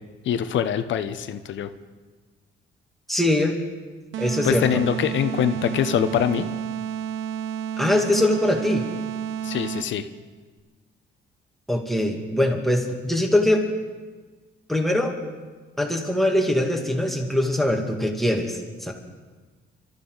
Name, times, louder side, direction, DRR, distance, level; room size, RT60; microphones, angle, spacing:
voice 1, 0.2-1.7 4.4-6.4 9.4-10.1, left 9 dB, 70° left, 10 dB, 1.0 m, -24 dB
voice 2, 3.1-3.6 4.2-4.7 7.8-8.8 11.7-13.6 14.7-15.1 15.8-18.9, left 1 dB, ahead, 1 dB, 2.4 m, -22 dB
sound 1, 4.1-10.1, right 8 dB, 80° right, 0.7 m, -31 dB
24.0 x 13.5 x 4.0 m, 1.4 s
cardioid pair, 90°, 20 cm